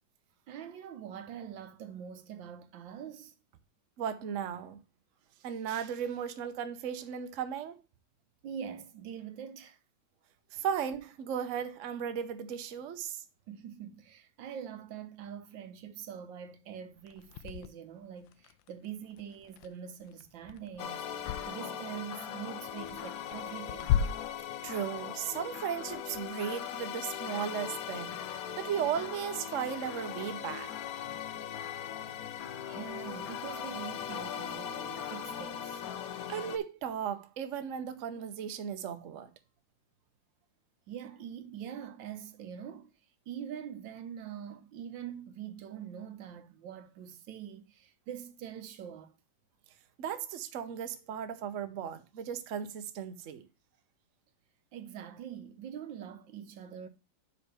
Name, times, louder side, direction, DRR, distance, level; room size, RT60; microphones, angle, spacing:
voice 1, 0.5-3.3 8.4-9.8 13.5-24.0 31.0-31.2 32.7-35.8 40.9-42.9 43.3-49.2 54.7-56.9, right 9 dB, 85° right, 1.5 m, -44 dB
voice 2, 4.0-4.8 5.4-7.8 10.5-13.2 24.6-28.2 28.6-30.7 36.3-39.3 50.0-53.5, right 8 dB, 55° right, 1.0 m, -36 dB
sound 1, 16.9-21.5 21.9-26.5, left 9 dB, 85° left, 1.4 m, -37 dB
sound 2, 20.8-36.6, left 9 dB, 65° left, 1.0 m, -40 dB
5.5 x 5.0 x 6.6 m
omnidirectional pair, 2.0 m